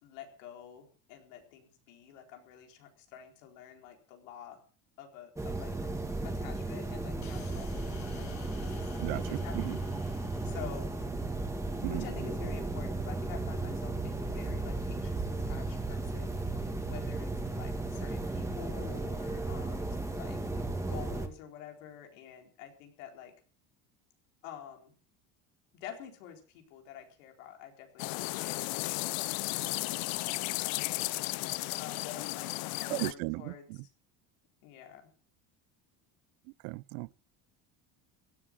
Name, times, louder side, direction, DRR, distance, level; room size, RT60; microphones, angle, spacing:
voice 1, 0.0-4.6 5.0-5.7 6.2-8.3 8.6-9.8 10.4-10.9 11.9-16.4 16.9-20.4 20.9-23.3 24.4-24.9 25.7-28.6 28.9-29.0 29.5-31.1 31.8-33.6 34.6-35.0, left 9 dB, 90° left, 4.2 m, -48 dB
sound 1, 5.4-21.3, right 2 dB, 10° right, 2.3 m, -35 dB
sound 2, 7.2-11.6, left 8 dB, 45° left, 2.7 m, -53 dB
voice 2, 9.0-9.8 11.8-12.0 32.9-33.5 36.6-37.1, right 25 dB, 85° right, 0.6 m, -35 dB
sound 3, 28.0-33.1, left 22 dB, 65° left, 0.7 m, -34 dB
16.5 x 11.5 x 6.2 m
cardioid pair, 115°, 37 cm